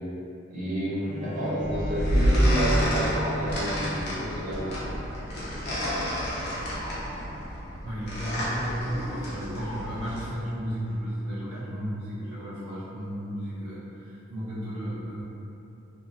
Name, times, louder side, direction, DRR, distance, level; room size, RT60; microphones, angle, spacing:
voice 1, 0.5-4.6, equal, 35° right, -10 dB, 0.8 m, -30 dB
Bowed string instrument, 1.0-6.6 7.3-7.4, equal, 10° right, 0.5 m, -36 dB
sound 1, 1.6-10.3, equal, 50° left, 0.6 m, -29 dB
voice 2, 7.8-15.2, equal, 65° right, -10 dB, 0.5 m, -34 dB
2.6 x 2.2 x 2.7 m, 2.8 s
head